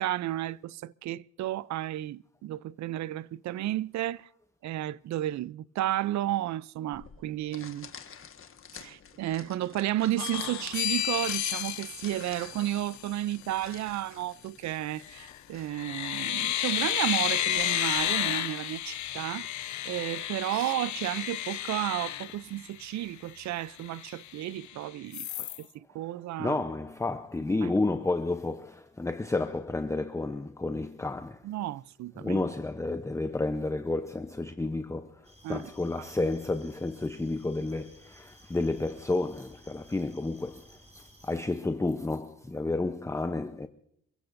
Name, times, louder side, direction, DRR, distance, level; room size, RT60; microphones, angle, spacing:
voice 1, 0.0-4.3 4.6-7.9 8.8-19.5 19.8-26.6 27.6-27.7 31.4-32.4 35.4-35.7, right 14 dB, 65° right, 0.5 m, -32 dB
sound 1, 6.9-18.3, left 7 dB, 45° left, 1.5 m, -50 dB
sound 2, 10.2-13.2 15.0-15.4 15.7-23.0 23.4-23.5 23.8-24.7 25.1-25.6, left 12 dB, 70° left, 1.0 m, -32 dB
voice 2, 26.4-31.5 32.2-43.7, left 2 dB, 10° left, 0.7 m, -31 dB
sound 3, 35.2-41.4, equal, 20° right, 5.0 m, -56 dB
29.0 x 16.0 x 2.6 m
cardioid pair, 90°, 30 cm